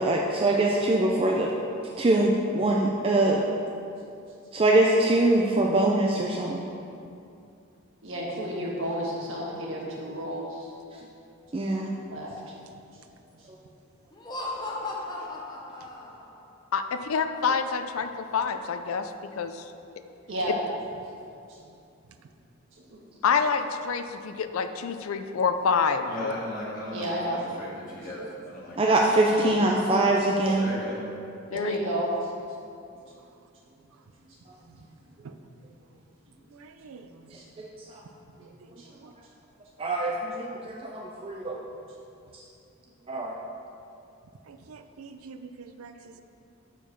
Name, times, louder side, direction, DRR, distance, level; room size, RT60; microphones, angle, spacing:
voice 1, 0.0-1.5 2.0-3.4 4.5-6.6 10.9-11.0 11.5-11.9 28.2-28.3 28.8-30.7 37.3-38.0 39.8-41.6 42.3-42.4 43.1-43.4, right 2 dB, 25° right, -1 dB, 0.4 m, -23 dB
voice 2, 8.0-10.7 12.1-12.4 20.3-20.6 21.5-21.6 22.8-23.0 26.9-27.4 29.3-29.5 31.5-32.1 33.1-33.2 34.6-34.7 35.1-35.2 36.3-36.4 36.9-37.5 38.3-38.5 38.8-39.0, equal, 65° right, -4 dB, 1.5 m, -33 dB
Laughter, 14.1-16.4, left 2 dB, 20° left, 0.7 m, -36 dB
voice 3, 16.7-19.7 23.2-26.3 31.5-31.8, left 5 dB, 80° left, 8 dB, 0.4 m, -27 dB
voice 4, 26.1-28.9 30.4-31.0, equal, 40° left, -6 dB, 1.8 m, -37 dB
voice 5, 36.5-37.1 38.4-39.1 41.6-41.7 44.5-46.2, right 4 dB, 85° right, 8 dB, 0.5 m, -47 dB
6.9 x 4.6 x 5.8 m, 2.6 s
head